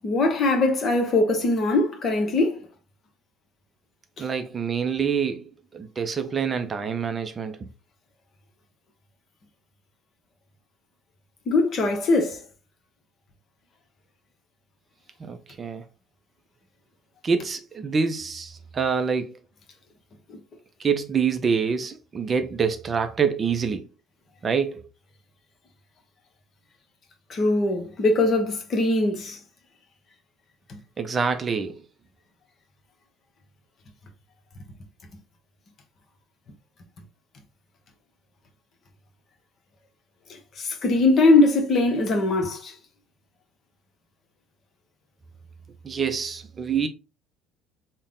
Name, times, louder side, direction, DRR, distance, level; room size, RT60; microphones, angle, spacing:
voice 1, 0.0-2.6 11.5-12.4 20.3-20.4 27.3-29.4 30.7-30.8 40.6-42.7, left 2 dB, 40° left, 0.8 m, -21 dB
voice 2, 4.2-7.7 15.2-15.8 17.2-19.4 20.8-23.9 24.4-24.8 31.0-31.8 45.8-46.9, right 6 dB, 30° right, 0.4 m, -26 dB
3.4 x 2.1 x 3.6 m
figure-of-eight pair, 60°, 0 cm